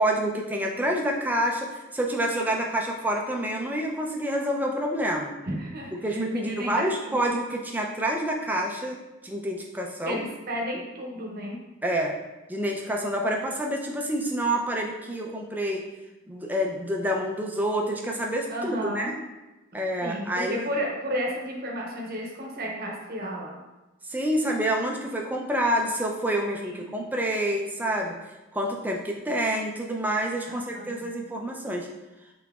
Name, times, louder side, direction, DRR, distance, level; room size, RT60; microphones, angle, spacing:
voice 1, 0.0-5.3 6.0-10.2 11.8-12.1 12.5-15.8 16.3-19.2 19.7-20.7 24.1-28.1 28.5-31.9, right 1 dB, 10° right, 0 dB, 0.4 m, -28 dB
voice 2, 5.4-6.8 7.2-7.3 10.1-11.6 18.5-19.1 20.0-23.6 26.6-26.9 30.4-31.1, equal, 45° right, -1 dB, 0.8 m, -32 dB
5.7 x 3.8 x 2.4 m, 1.1 s
head